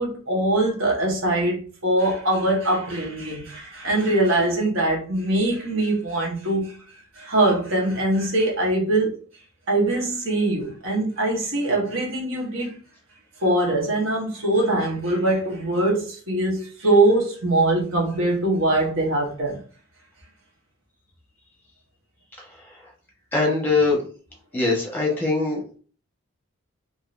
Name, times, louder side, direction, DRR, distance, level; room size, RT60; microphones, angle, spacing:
voice 1, 0.0-9.1 9.7-12.8 13.4-19.6, right 2 dB, 60° right, 1.1 m, -22 dB
voice 2, 23.3-24.0 24.5-25.6, left 3 dB, 10° left, 1.0 m, -22 dB
3.6 x 2.6 x 2.5 m
head